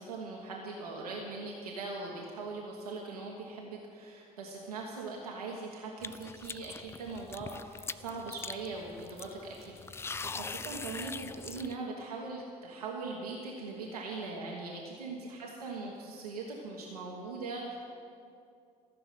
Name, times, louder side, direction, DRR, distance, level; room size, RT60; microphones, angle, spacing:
voice 1, 0.0-17.8, right 3 dB, 80° right, -2 dB, 1.3 m, -41 dB
sound 1, 6.0-11.8, left 4 dB, 15° left, 0.3 m, -42 dB
15.0 x 6.9 x 9.1 m, 2.5 s
figure-of-eight pair, 55°, 19 cm